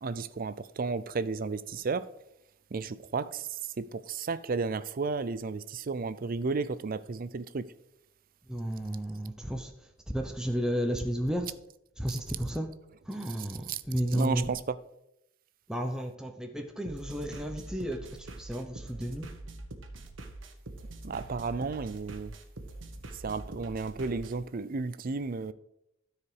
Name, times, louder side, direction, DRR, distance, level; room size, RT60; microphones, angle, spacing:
voice 1, 0.0-2.0 2.7-7.7 12.1-12.2 13.4-13.8 14.1-14.6 21.0-22.3 23.2-25.5, right 4 dB, 45° right, 0.5 m, -33 dB
voice 2, 8.5-11.6 12.0-12.7 13.1-14.5 15.7-19.3, equal, 5° right, 0.7 m, -33 dB
sound 1, 16.8-24.3, right 2 dB, 70° right, 1.2 m, -44 dB
13.0 x 4.9 x 4.9 m
head